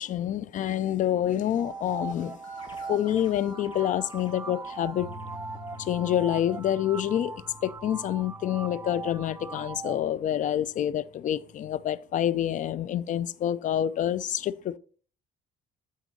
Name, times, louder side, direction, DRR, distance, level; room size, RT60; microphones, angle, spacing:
voice 1, 0.0-2.4 2.8-5.1 5.8-7.3 7.6-14.8, left 11 dB, 50° left, 0.5 m, -27 dB
sound 1, 1.6-10.0, right 4 dB, 15° right, 0.4 m, -40 dB
sound 2, 2.4-6.8, left 4 dB, 30° left, 2.2 m, -53 dB
sound 3, 5.0-11.9, left 2 dB, 35° right, 2.6 m, -49 dB
9.2 x 3.8 x 5.3 m
cardioid pair, 110°, 17 cm